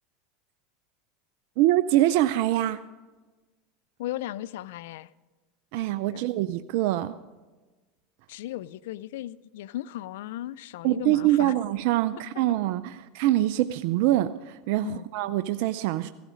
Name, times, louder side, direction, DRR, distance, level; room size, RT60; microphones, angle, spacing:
voice 1, 1.6-2.8 5.7-7.1 10.8-16.1, right 14 dB, 65° right, 0.5 m, -24 dB
voice 2, 4.0-5.1 6.1-6.3 8.3-11.5 14.8-15.1, left 14 dB, 75° left, 0.4 m, -36 dB
15.5 x 13.5 x 5.1 m
hypercardioid pair, 105°, 0 cm